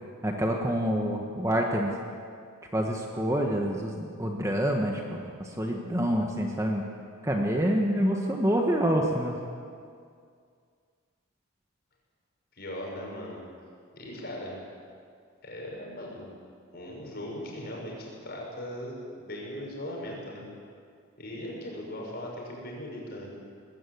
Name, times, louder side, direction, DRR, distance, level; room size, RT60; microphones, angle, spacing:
voice 1, 0.2-1.9 2.7-6.8 7.2-9.4, equal, 15° right, 1 dB, 1.4 m, -27 dB
voice 2, 12.6-13.4 13.9-14.6 15.4-16.3 16.7-20.4 21.2-23.3, left 1 dB, 45° left, -2 dB, 6.1 m, -39 dB
19.5 x 15.5 x 9.5 m, 2.2 s
head